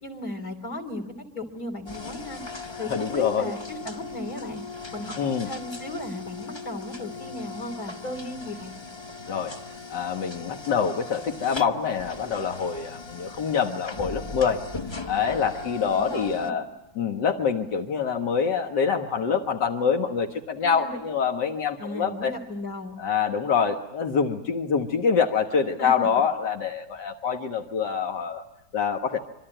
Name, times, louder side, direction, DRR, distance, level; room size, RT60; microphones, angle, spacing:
voice 1, 0.0-1.1 1.3-2.4 2.8-4.6 4.9-8.7 15.7-16.5 20.6-20.9 21.8-23.0 25.8-26.1, left 2 dB, 60° left, 5 dB, 3.8 m, -36 dB
sound 1, 1.9-16.5, left 3 dB, 20° left, 0.9 m, -39 dB
voice 2, 2.8-3.5 5.2-5.5 9.3-9.6 9.9-14.6 15.1-16.7 17.0-22.3 23.0-28.4 28.7-29.2, left 6 dB, 90° left, 3 dB, 2.1 m, -25 dB
26.0 x 24.5 x 9.0 m, 0.86 s
omnidirectional pair, 1.8 m